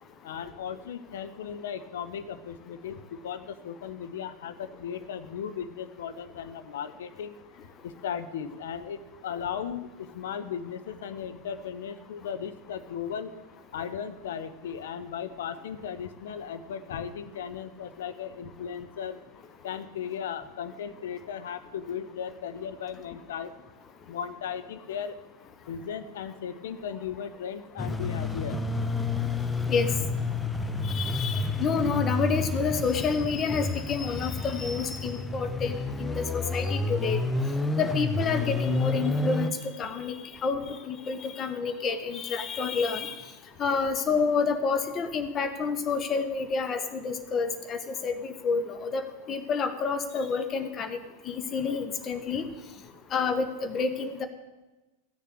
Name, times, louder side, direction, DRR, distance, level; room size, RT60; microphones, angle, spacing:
voice 1, 0.2-7.4 7.8-13.3 13.7-19.2 19.6-23.6 24.1-25.2 25.7-28.6 30.8-30.9, left 8 dB, 60° left, 11 dB, 0.8 m, -36 dB
sound 1, 27.8-39.5, left 3 dB, 10° left, 0.7 m, -30 dB
voice 2, 30.8-37.2 37.8-39.5 39.8-40.2 40.4-43.1 43.6-49.0 49.3-51.0 51.3-52.4 53.1-54.3, left 5 dB, 25° left, 9 dB, 1.1 m, -29 dB
14.0 x 6.7 x 6.5 m, 1.1 s
figure-of-eight pair, 90°, 0 cm